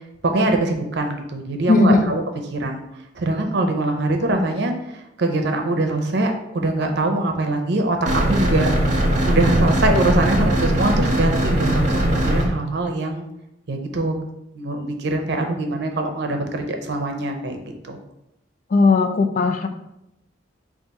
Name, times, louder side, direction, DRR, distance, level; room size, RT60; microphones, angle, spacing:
voice 1, 0.2-2.8 3.2-8.7 9.3-13.3 13.7-14.2 14.5-17.6 17.8-18.0, right 2 dB, 65° right, 4 dB, 0.6 m, -23 dB
voice 2, 1.7-2.1 18.7-19.7, left 3 dB, 45° left, 6 dB, 0.4 m, -17 dB
sound 1, 8.1-12.5, right 1 dB, 45° right, 0.9 m, -20 dB
4.0 x 2.5 x 4.6 m, 0.87 s
head